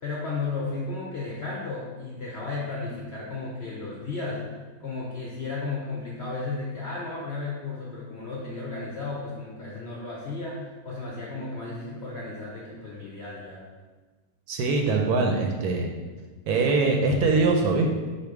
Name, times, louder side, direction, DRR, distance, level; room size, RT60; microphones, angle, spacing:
voice 1, 0.0-4.4 4.8-13.6, left 3 dB, 60° left, -4 dB, 0.7 m, -34 dB
voice 2, 14.5-15.9 16.5-17.9, right 3 dB, 70° right, 2 dB, 1.0 m, -22 dB
4.3 x 2.6 x 4.6 m, 1.3 s
omnidirectional pair, 1.8 m